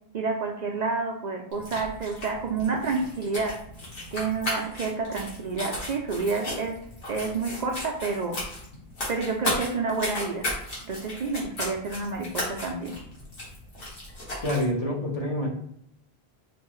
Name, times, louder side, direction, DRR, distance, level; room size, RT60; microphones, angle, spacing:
voice 1, 0.1-3.7 4.1-6.8 7.1-8.4 9.1-10.5 10.8-13.0, right 4 dB, 55° right, 2 dB, 0.5 m, -29 dB
sound 1, 1.5-14.7, left 1 dB, 60° left, 1.5 m, -35 dB
voice 2, 14.4-15.5, left 1 dB, 40° left, -2 dB, 1.0 m, -27 dB
4.2 x 2.7 x 3.0 m, 0.72 s
omnidirectional pair, 1.1 m